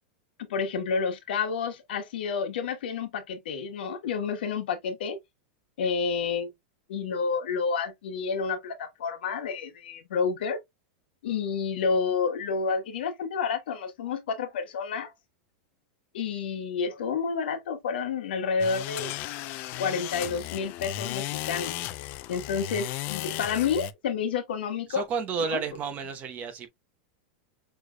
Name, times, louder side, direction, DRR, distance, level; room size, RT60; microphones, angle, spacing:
voice 1, 0.4-5.2 5.8-6.5 6.9-10.6 11.2-15.1 16.1-19.1 19.8-21.9 22.3-25.0, left 5 dB, 85° left, 1.4 m, -29 dB
sound 1, 18.6-23.9, left 15 dB, 40° left, 0.5 m, -35 dB
voice 2, 24.9-26.7, right 5 dB, 30° right, 1.0 m, -31 dB
6.1 x 3.2 x 2.3 m
supercardioid pair, 150°, 5 cm